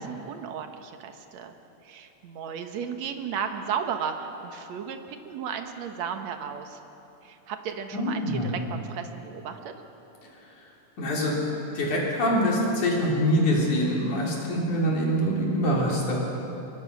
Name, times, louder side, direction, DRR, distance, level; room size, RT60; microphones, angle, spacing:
voice 1, 0.0-1.5 1.8-6.8 7.2-9.7, right 7 dB, 65° right, 6 dB, 2.4 m, -34 dB
voice 2, 7.9-8.5 11.0-11.4 11.7-16.2, equal, 70° left, -3 dB, 5.1 m, -24 dB
23.5 x 22.0 x 6.2 m, 3.0 s
omnidirectional pair, 3.7 m